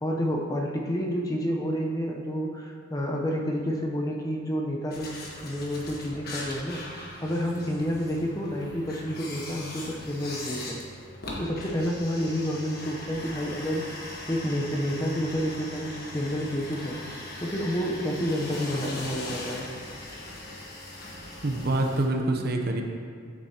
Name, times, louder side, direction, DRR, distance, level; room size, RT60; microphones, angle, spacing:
voice 1, 0.0-5.1 5.4-10.8 11.4-17.0 17.4-19.7, equal, 20° left, 0 dB, 0.7 m, -29 dB
sound 1, 4.9-22.0, left 2 dB, 50° left, 1.3 m, -40 dB
voice 2, 21.4-22.8, right 2 dB, 50° right, 3 dB, 0.7 m, -26 dB
8.7 x 8.3 x 2.8 m, 2.2 s
head